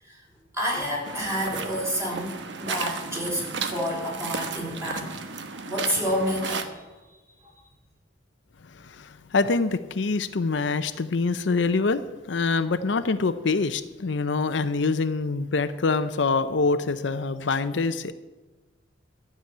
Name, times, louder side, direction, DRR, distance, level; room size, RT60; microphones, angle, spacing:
voice 1, 0.5-5.1 5.5-6.8 7.4-7.5, equal, 15° right, -2 dB, 3.6 m, -29 dB
sound 1, 1.0-6.7, right 4 dB, 75° right, 1.0 m, -34 dB
voice 2, 8.6-12.0 12.3-18.1, left 4 dB, 75° left, 11 dB, 0.6 m, -25 dB
12.5 x 7.0 x 9.1 m, 1.2 s
head